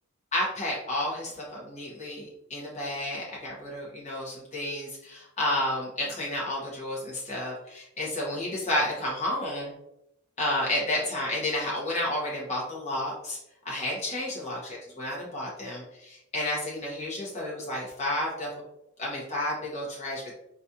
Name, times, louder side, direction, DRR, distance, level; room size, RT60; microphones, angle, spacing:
voice 1, 0.3-9.7 10.4-13.4 13.6-18.5 19.0-20.3, left 1 dB, 35° left, -5 dB, 1.0 m, -31 dB
4.0 x 2.5 x 2.7 m, 0.81 s
head